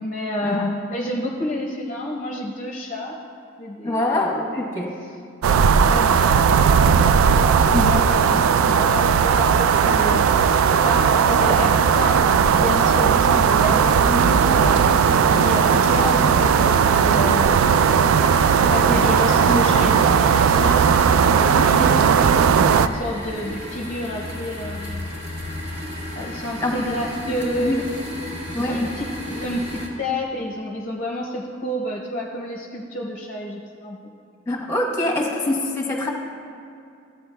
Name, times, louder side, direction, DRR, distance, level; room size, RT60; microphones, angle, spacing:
voice 1, 0.0-3.2 3.6-4.2 5.7-6.5 7.3-10.3 10.8-17.8 18.6-21.2 21.4-22.4 22.8-25.1 26.1-27.8 28.6-34.0, left 1 dB, 35° left, -2 dB, 0.6 m, -29 dB
voice 2, 3.8-4.9 7.7-8.0 26.6-26.7 27.3-27.8 28.5-28.8 34.5-36.1, left 2 dB, 15° left, -1 dB, 1.1 m, -24 dB
sound 1, 5.4-22.9, right 6 dB, 85° right, 0.3 m, -17 dB
sound 2, 13.6-29.9, left 1 dB, 50° right, 1.9 m, -34 dB
14.5 x 8.4 x 2.2 m, 2.5 s
head